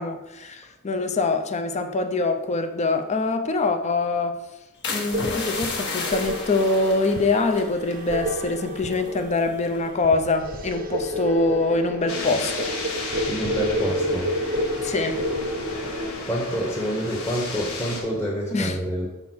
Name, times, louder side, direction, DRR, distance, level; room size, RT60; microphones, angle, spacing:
voice 1, 0.0-4.3 4.9-12.7 14.8-15.2 18.5-18.8, left 3 dB, 30° left, 0.5 m, -24 dB
sound 1, 4.8-8.6 8.8-9.2 9.7-10.0, left 3 dB, 55° left, 1.3 m, -33 dB
sound 2, 5.1-16.1, equal, 40° right, 0.7 m, -30 dB
sound 3, 12.1-18.0, left 3 dB, 75° left, 1.3 m, -34 dB
voice 2, 13.3-14.3 16.2-19.1, equal, 10° left, 1.0 m, -27 dB
5.6 x 4.3 x 6.1 m
head